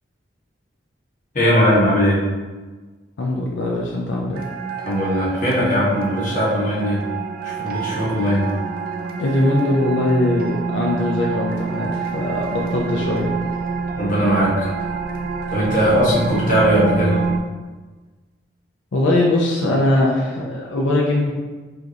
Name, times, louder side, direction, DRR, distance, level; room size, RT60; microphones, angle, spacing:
voice 1, 1.3-2.2 4.8-7.0 7.4-8.5 14.0-14.7 15.5-17.2, equal, 40° left, -6 dB, 1.1 m, -19 dB
voice 2, 3.2-4.4 9.2-13.3 15.9-16.0 18.9-21.3, left 1 dB, 80° left, -3 dB, 0.5 m, -21 dB
sound 1, 4.3-17.4, right 5 dB, 50° right, 0.3 m, -27 dB
5.0 x 2.6 x 2.8 m, 1.3 s
head